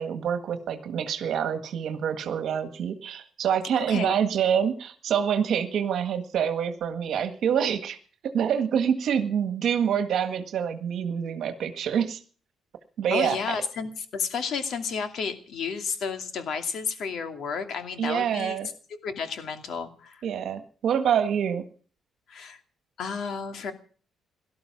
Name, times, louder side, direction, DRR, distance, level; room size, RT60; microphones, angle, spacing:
voice 1, 0.0-8.0 8.2-12.2 13.0-13.4 18.0-18.7 20.2-21.7, right 8 dB, 60° right, 9 dB, 1.7 m, -26 dB
voice 2, 3.9-4.2 13.1-18.6 19.0-20.2 22.3-22.6 23.0-23.7, left 5 dB, 55° left, 7 dB, 2.5 m, -32 dB
18.0 x 12.5 x 6.0 m, 0.43 s
cardioid pair, 155°, 0 cm